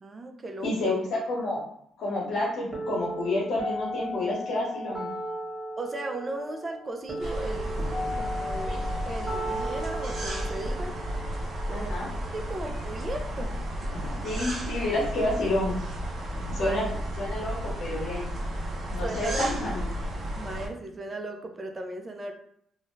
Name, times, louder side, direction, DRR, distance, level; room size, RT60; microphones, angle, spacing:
voice 1, 0.0-0.7 5.8-7.8 8.1-10.9 11.7-12.0 12.3-13.5 16.5-16.8 19.0-19.5 20.3-22.3, right 2 dB, 30° right, 4 dB, 0.5 m, -36 dB
voice 2, 0.6-1.6 2.0-5.1 11.7-12.1 14.2-15.8 16.5-16.8 17.2-18.3 18.9-19.8, left 2 dB, 80° left, -7 dB, 0.9 m, -29 dB
sound 1, 2.7-12.7, equal, ahead, 1.1 m, -36 dB
sound 2, 7.2-20.7, equal, 55° right, 0.8 m, -33 dB
sound 3, 7.8-8.3 13.9-14.4 16.4-16.7 17.0-17.3, left 1 dB, 50° left, 0.7 m, -42 dB
2.5 x 2.1 x 3.1 m, 0.68 s
cardioid pair, 90°, 0 cm